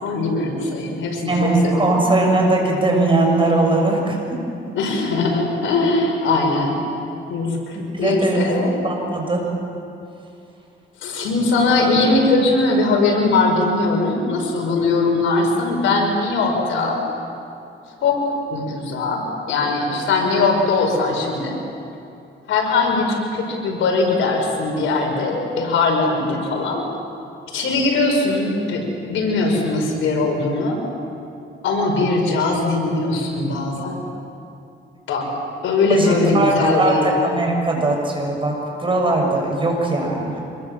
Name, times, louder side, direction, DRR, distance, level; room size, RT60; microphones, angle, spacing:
voice 1, 0.0-2.0 4.8-6.8 7.3-8.7 11.0-17.0 18.0-18.2 18.5-21.6 22.5-26.9 27.5-30.8 31.6-34.0 35.1-35.3 35.6-37.1, left 3 dB, 80° left, 1 dB, 5.5 m, -20 dB
voice 2, 1.3-4.4 7.7-8.6 8.8-9.4 35.9-40.4, right 2 dB, 25° right, 0 dB, 7.0 m, -20 dB
26.5 x 22.0 x 7.5 m, 2.6 s
cardioid pair, 90°, 20 cm